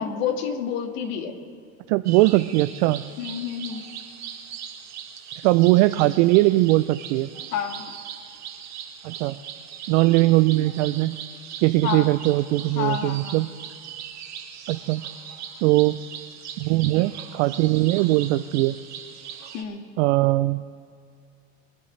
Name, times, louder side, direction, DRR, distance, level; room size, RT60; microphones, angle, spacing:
voice 1, 0.0-1.4 3.2-3.8 7.5-8.0 11.8-12.1 12.8-13.4 19.5-19.8, left 8 dB, 80° left, 5 dB, 1.8 m, -29 dB
voice 2, 1.9-3.0 5.4-7.3 9.0-9.4 9.9-11.2 11.6-13.5 14.7-15.0 15.6-15.9 16.6-18.8 20.0-20.6, right 18 dB, 70° right, 11 dB, 0.5 m, -20 dB
sound 1, 2.0-19.6, right 8 dB, 45° right, 1.7 m, -40 dB
23.5 x 11.0 x 3.3 m, 2.3 s
supercardioid pair, 110°, 39 cm